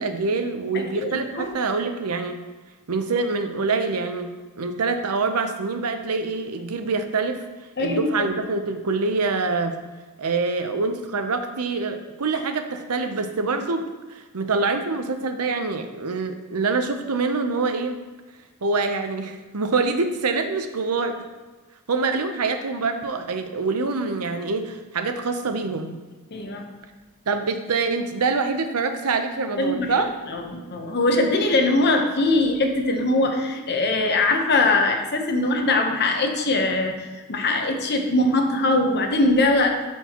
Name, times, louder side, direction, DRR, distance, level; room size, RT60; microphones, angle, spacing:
voice 1, 0.0-2.4 2.9-4.3 4.6-7.4 7.8-9.7 10.2-18.0 18.6-21.2 21.9-26.0 27.3-30.1, right 4 dB, 85° right, 7 dB, 0.8 m, -25 dB
voice 2, 0.7-1.5 7.8-8.1 26.3-26.7 29.6-29.9 30.3-39.9, left 2 dB, 50° left, 4 dB, 0.9 m, -22 dB
12.5 x 4.6 x 3.0 m, 1.3 s
head